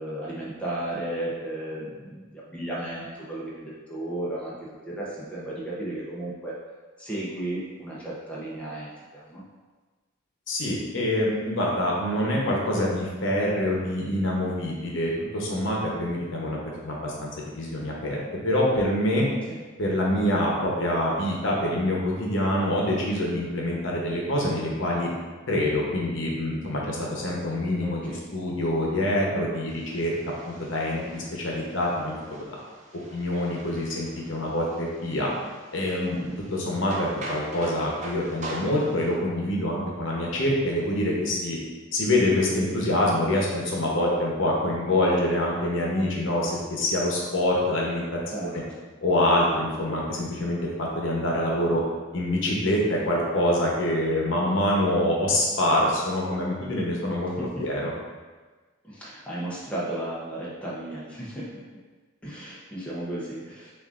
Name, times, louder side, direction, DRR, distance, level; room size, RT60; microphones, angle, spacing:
voice 1, 0.0-6.5 7.0-9.4 19.5-19.6 27.8-28.2 36.1-36.4 48.3-48.6 57.4-57.6 58.8-61.8 62.2-63.7, right 1 dB, 5° left, -7 dB, 0.7 m, -34 dB
voice 2, 10.5-18.2 18.4-19.3 19.8-25.1 25.5-28.0 28.3-30.2 30.5-32.4 33.1-35.3 35.7-36.2 36.5-41.6 41.9-48.6 49.0-51.8 52.1-57.3 57.6-57.9, left 1 dB, 70° left, -3 dB, 0.9 m, -25 dB
sound 1, 29.7-39.1, right 1 dB, 35° right, 0.6 m, -43 dB
7.0 x 2.5 x 2.5 m, 1.3 s
head